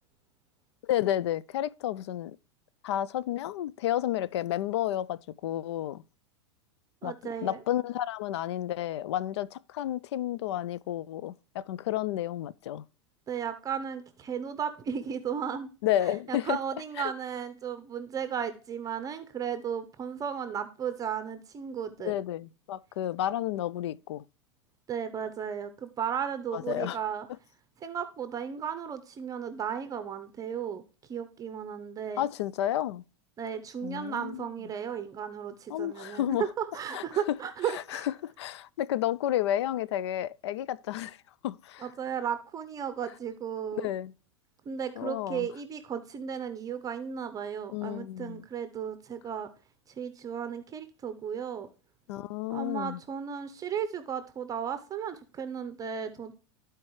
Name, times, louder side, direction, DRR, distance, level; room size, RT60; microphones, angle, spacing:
voice 1, 0.8-2.4 2.8-6.0 7.0-7.1 7.4-12.8 15.8-16.6 17.0-17.1 22.0-24.2 26.5-27.0 32.2-33.0 33.8-34.5 35.7-36.4 36.9-37.4 37.7-41.2 41.4-41.9 43.7-44.1 45.0-45.5 47.7-48.4 52.1-53.0, left 12 dB, 75° left, 0.4 m, -31 dB
voice 2, 7.0-7.6 13.3-15.7 16.0-22.1 24.9-27.3 27.8-30.8 31.1-32.3 33.4-38.1 41.8-43.9 44.7-49.5 49.9-51.7 52.5-56.3, right 8 dB, 25° right, 0.7 m, -35 dB
13.0 x 4.4 x 3.1 m
hypercardioid pair, 110°, 14 cm